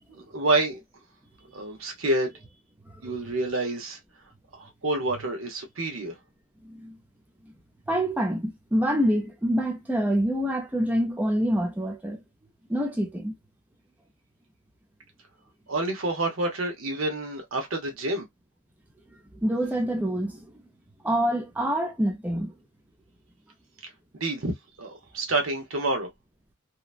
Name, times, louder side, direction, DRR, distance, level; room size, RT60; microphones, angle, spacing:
voice 1, 0.1-0.8 1.5-2.3 3.0-4.0 4.5-6.1 15.7-18.3 24.2-24.5 24.8-26.1, right 2 dB, 70° right, 1.0 m, -28 dB
voice 2, 6.6-7.0 7.9-12.2 12.7-13.4 19.4-20.6 21.0-22.5, equal, 10° right, 0.5 m, -26 dB
2.9 x 2.2 x 2.4 m
head